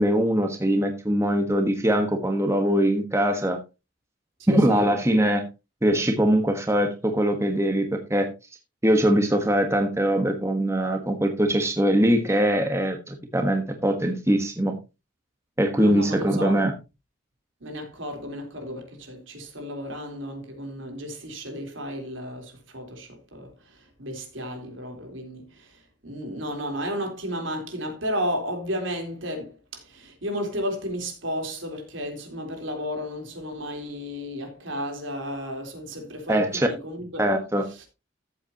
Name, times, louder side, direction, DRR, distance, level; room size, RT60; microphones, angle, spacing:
voice 1, 0.0-3.6 4.5-5.4 5.8-8.3 8.8-14.7 15.6-16.7 36.3-36.7 37.2-37.7, right 1 dB, 15° right, 1.3 m, -22 dB
voice 2, 4.4-4.9 15.8-16.6 17.6-37.3, equal, 75° right, 3.8 m, -33 dB
14.5 x 8.0 x 2.9 m
head